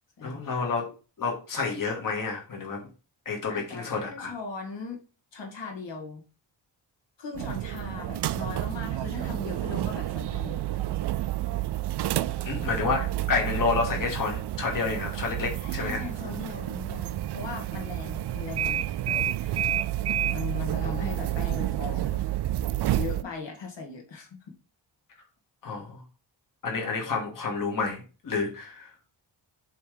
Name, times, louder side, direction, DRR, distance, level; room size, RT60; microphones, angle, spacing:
voice 1, 0.2-0.9 1.2-2.9 3.3-4.3 12.4-16.0 25.6-26.0 26.6-28.9, left 4 dB, 45° left, 2.0 m, -29 dB
voice 2, 3.5-5.0 5.3-6.2 7.2-11.3 12.6-13.1 15.6-19.6 20.3-22.2 23.0-24.3, left 4 dB, 70° left, 1.9 m, -39 dB
sound 1, 7.3-23.2, right 13 dB, 65° right, 0.5 m, -30 dB
7.9 x 3.3 x 5.0 m
wide cardioid pair, 160°, 44 cm